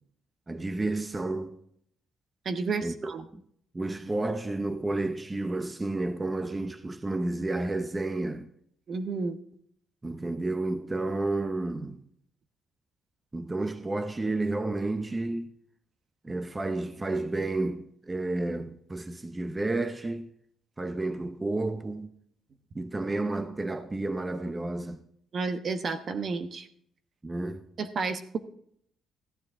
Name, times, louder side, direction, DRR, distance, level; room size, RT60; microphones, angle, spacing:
voice 1, 0.5-1.6 2.8-3.4 3.7-8.5 10.0-12.0 13.3-15.5 16.2-20.3 20.8-22.1 22.7-25.0 27.2-27.7, right 2 dB, 20° right, 0.7 m, -31 dB
voice 2, 2.4-3.2 8.9-9.4 25.3-26.7 27.8-28.4, right 4 dB, 50° right, 1.0 m, -31 dB
14.5 x 9.6 x 3.7 m
cardioid pair, 90°, 0 cm